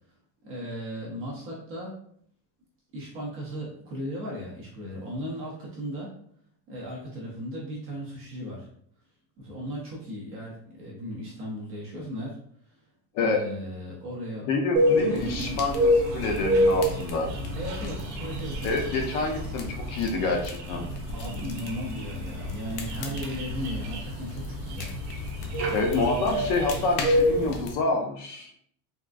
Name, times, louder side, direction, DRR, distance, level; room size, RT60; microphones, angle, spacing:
voice 1, 0.4-2.0 2.9-6.1 6.7-8.7 9.4-12.4 13.2-14.5 14.9-15.6 17.6-18.7 21.1-24.9, equal, 30° right, -3 dB, 0.4 m, -36 dB
voice 2, 14.5-17.3 18.6-20.8 25.7-28.5, left 3 dB, 45° left, 2 dB, 0.4 m, -27 dB
sound 1, 14.8-27.6, equal, 85° right, 0.8 m, -28 dB
sound 2, 15.1-27.7, left 2 dB, 80° left, 0.7 m, -36 dB
3.4 x 2.3 x 2.3 m, 0.63 s
cardioid pair, 175°, 50 cm